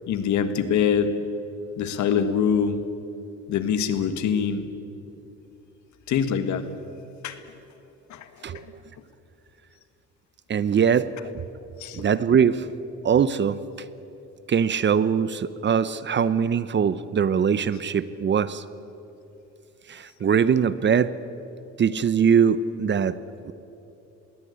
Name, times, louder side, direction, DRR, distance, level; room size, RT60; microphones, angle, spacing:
voice 1, 0.1-1.1 1.8-2.8 3.5-4.7 6.1-6.7 7.2-7.4 8.1-8.3 11.8-12.1, left 7 dB, 65° left, 10 dB, 1.8 m, -24 dB
voice 2, 10.5-11.1 11.9-12.7 13.0-13.6 14.5-18.6 19.9-21.1 21.8-23.2 23.4-23.5, right 7 dB, 35° right, 16 dB, 0.8 m, -22 dB
21.0 x 17.0 x 9.7 m, 2.9 s
cardioid pair, 110°, 31 cm